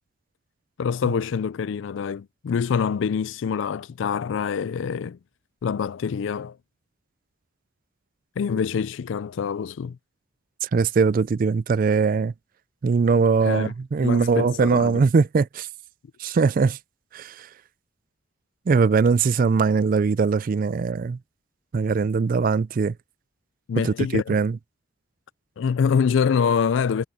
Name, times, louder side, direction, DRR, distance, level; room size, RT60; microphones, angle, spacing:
voice 1, 0.8-5.2 5.6-6.6 8.4-10.0 13.4-13.7 14.0-15.1 23.7-24.4 25.6-27.0, left 6 dB, 65° left, 0.3 m, -25 dB
voice 2, 10.6-12.3 12.8-15.7 16.2-16.8 17.1-17.5 18.7-21.2 21.7-22.9 23.8-24.6, right 5 dB, 45° right, 0.3 m, -21 dB
head